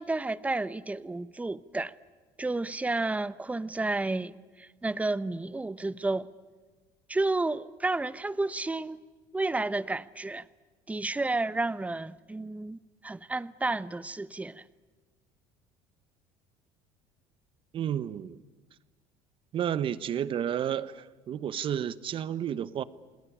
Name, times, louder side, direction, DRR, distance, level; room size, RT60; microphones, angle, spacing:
voice 1, 0.0-1.9 2.4-4.3 4.6-6.3 7.1-9.0 9.3-10.5 10.9-14.6, right 2 dB, 10° right, 0.8 m, -31 dB
voice 2, 17.7-18.4 19.5-22.8, right 9 dB, 45° right, 1.0 m, -31 dB
28.5 x 19.5 x 9.9 m
supercardioid pair, 105°, 12 cm